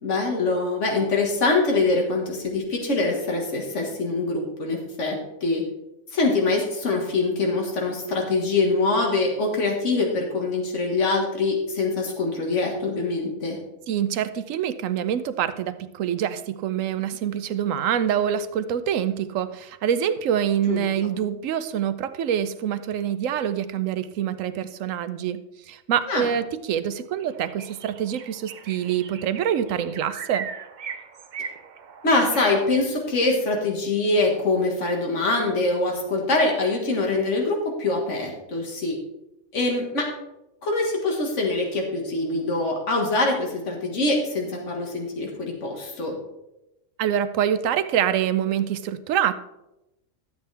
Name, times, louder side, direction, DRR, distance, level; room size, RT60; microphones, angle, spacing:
voice 1, 0.0-5.2 5.4-5.6 6.1-13.6 20.7-20.8 26.1-26.3 32.0-39.0 39.5-40.1 40.6-46.2, left 3 dB, 65° left, 1 dB, 1.9 m, -24 dB
voice 2, 13.9-25.4 25.7-30.5 47.0-49.3, right 9 dB, 85° right, 12 dB, 1.0 m, -25 dB
sound 1, 26.8-26.9 27.2-32.6, right 6 dB, 50° right, 0.6 m, -39 dB
12.0 x 8.2 x 3.3 m, 0.92 s
omnidirectional pair, 1.3 m